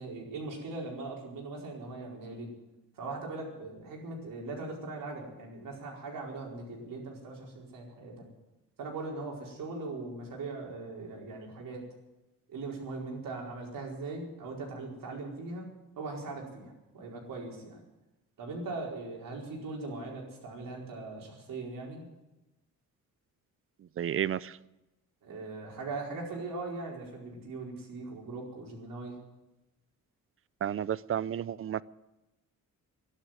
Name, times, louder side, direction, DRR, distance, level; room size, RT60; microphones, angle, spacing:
voice 1, 0.0-2.5 3.0-8.1 8.8-11.8 12.5-15.7 16.0-17.8 18.4-22.1 25.2-29.2, right 3 dB, 80° right, 4.8 m, -40 dB
voice 2, 24.0-24.6 30.6-31.8, right 10 dB, 40° right, 0.5 m, -31 dB
13.5 x 11.5 x 9.3 m
wide cardioid pair, 140°, 33 cm